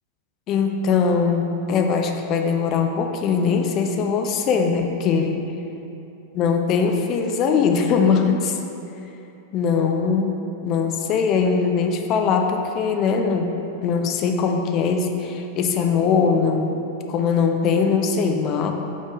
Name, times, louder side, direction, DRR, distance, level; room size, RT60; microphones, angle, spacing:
voice 1, 0.5-5.5 6.3-8.6 9.5-10.3 10.6-13.5 13.8-16.8 17.1-18.7, left 5 dB, 35° left, 4 dB, 0.5 m, -21 dB
6.1 x 4.4 x 4.9 m, 2.8 s
figure-of-eight pair, 90°, 0 cm